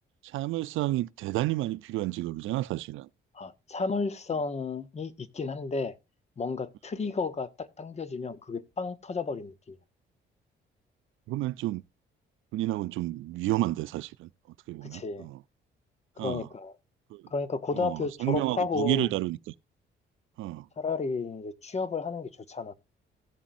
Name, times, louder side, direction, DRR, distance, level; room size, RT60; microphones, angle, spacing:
voice 1, 0.3-3.1 11.3-11.8 12.5-14.3 14.7-15.4 16.2-16.5 17.1-17.2 17.7-19.5 20.4-20.7, right 16 dB, 85° right, 0.5 m, -31 dB
voice 2, 3.3-6.0 6.4-9.8 14.8-15.3 16.2-16.7 17.3-19.1 20.8-22.7, left 4 dB, 35° left, 0.9 m, -32 dB
16.5 x 7.2 x 2.6 m
cardioid pair, 90°, 20 cm